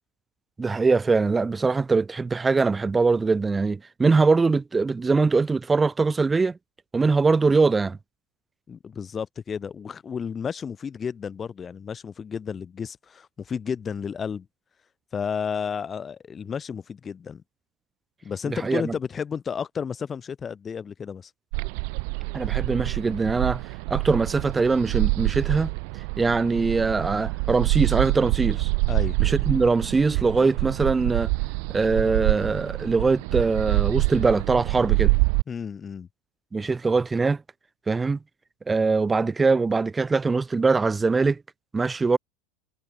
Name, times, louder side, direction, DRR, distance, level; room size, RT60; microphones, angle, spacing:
voice 1, 0.6-6.6 6.9-8.0 18.5-18.9 22.3-23.6 23.9-28.7 29.2-31.3 31.7-35.1 36.5-37.4 37.9-38.2 38.7-41.4 41.7-42.2, right 4 dB, 15° right, 3.4 m, -22 dB
voice 2, 8.7-14.5 15.1-17.4 18.2-21.3 28.9-29.2 35.5-36.1, left 6 dB, 25° left, 4.2 m, -32 dB
sound 1, 21.5-35.4, right 38 dB, 65° right, 2.3 m, -26 dB
hypercardioid pair, 95°, 0 cm